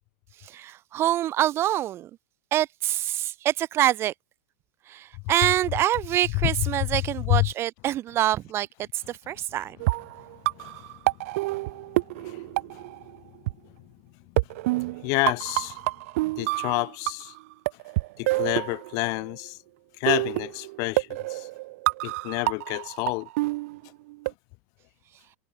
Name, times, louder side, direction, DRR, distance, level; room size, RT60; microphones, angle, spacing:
voice 1, 0.4-2.1 2.5-4.1 4.9-9.8, right 13 dB, 30° right, 2.0 m, -26 dB
sound 1, 9.8-13.2 13.5-13.6 14.4-17.4 17.7-19.3 20.1-24.3, right 21 dB, 55° right, 1.5 m, -28 dB
voice 2, 15.0-15.8 16.4-17.3 18.2-19.6 20.0-21.5 22.0-23.3, left 31 dB, 40° left, 0.7 m, -28 dB
supercardioid pair, 155°, 9 cm